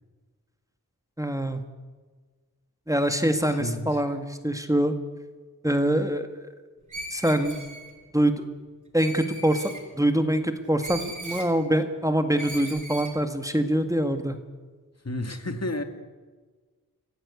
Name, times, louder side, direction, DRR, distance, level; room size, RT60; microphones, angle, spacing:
voice 1, 1.2-1.6 2.9-4.9 5.6-6.4 7.1-7.6 8.1-8.4 8.9-14.4, right 1 dB, 10° right, 7 dB, 1.9 m, -24 dB
voice 2, 3.5-4.0 15.0-15.8, left 1 dB, 45° left, 7 dB, 2.2 m, -31 dB
Screech, 6.9-7.9 9.0-9.8 10.8-11.5 12.4-13.1, right 1 dB, 55° right, 5.3 m, -38 dB
26.5 x 15.5 x 8.4 m, 1.4 s
wide cardioid pair, 70°, 37 cm